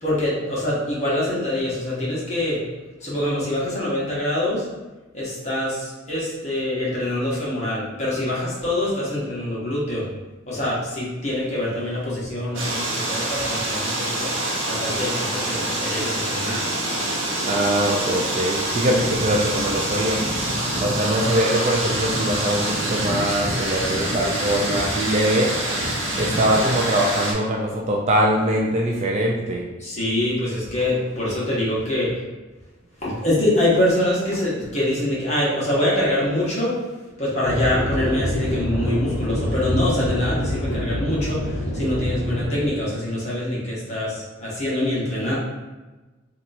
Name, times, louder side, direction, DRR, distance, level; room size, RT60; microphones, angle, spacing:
voice 1, 0.0-2.6 3.0-4.7 5.1-10.1 10.5-14.3 14.6-16.7 29.8-32.2 33.0-36.8 37.2-45.4, left 1 dB, 35° left, -7 dB, 1.0 m, -24 dB
sound 1, 12.5-27.3, right 1 dB, 70° right, 0.8 m, -25 dB
voice 2, 17.5-20.2 20.8-25.5 26.2-29.6, right 1 dB, 35° right, -2 dB, 0.4 m, -22 dB
sound 2, 37.4-42.7, left 1 dB, 90° left, 0.6 m, -26 dB
2.8 x 2.3 x 4.0 m, 1.2 s
head